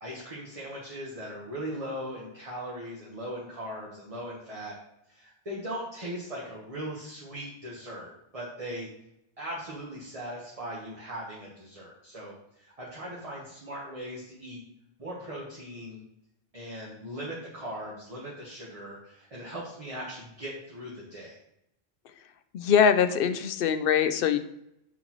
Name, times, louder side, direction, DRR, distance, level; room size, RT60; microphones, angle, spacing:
voice 1, 0.0-4.7 5.1-8.9 9.4-14.6 15.0-16.0 16.5-21.4, equal, 35° right, -5 dB, 1.3 m, -39 dB
voice 2, 22.5-24.4, left 7 dB, 65° left, 11 dB, 0.7 m, -23 dB
6.3 x 6.1 x 3.0 m, 0.80 s
omnidirectional pair, 1.1 m